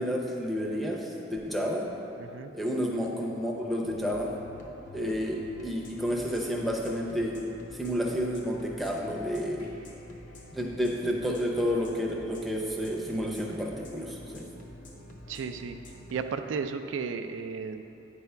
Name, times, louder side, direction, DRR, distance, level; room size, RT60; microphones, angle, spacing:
voice 1, 0.0-1.9 2.5-4.3 4.9-7.4 7.7-9.7 10.5-14.5, equal, ahead, -3 dB, 0.6 m, -30 dB
voice 2, 2.2-2.5 15.3-15.8 16.1-17.8, right 5 dB, 70° right, 8 dB, 0.3 m, -34 dB
sound 1, 3.9-16.1, left 1 dB, 40° left, 0.8 m, -48 dB
9.1 x 3.5 x 5.5 m, 3.0 s
head